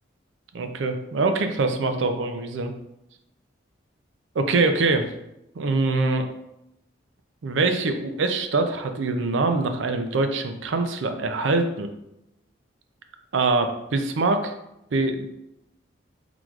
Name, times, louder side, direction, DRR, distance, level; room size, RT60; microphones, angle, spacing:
voice 1, 0.5-2.7 4.4-5.1 5.6-6.3 7.4-11.9 13.3-14.5 14.9-15.3, right 3 dB, 80° right, 7 dB, 0.5 m, -24 dB
3.9 x 2.4 x 4.6 m, 0.85 s
head